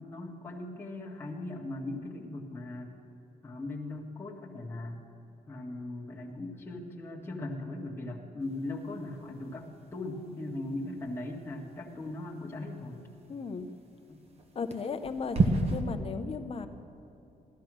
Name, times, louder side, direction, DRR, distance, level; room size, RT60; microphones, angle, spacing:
voice 1, 0.0-2.9 3.4-5.0 5.5-13.0 14.1-14.2, left 2 dB, 15° left, -4 dB, 1.7 m, -39 dB
sound 1, 8.4-15.8, right 2 dB, 40° right, 1.5 m, -35 dB
voice 2, 13.3-13.7 14.5-16.7, left 5 dB, 40° left, 8 dB, 0.9 m, -36 dB
15.5 x 12.5 x 6.3 m, 2.8 s
cardioid pair, 120°, 16 cm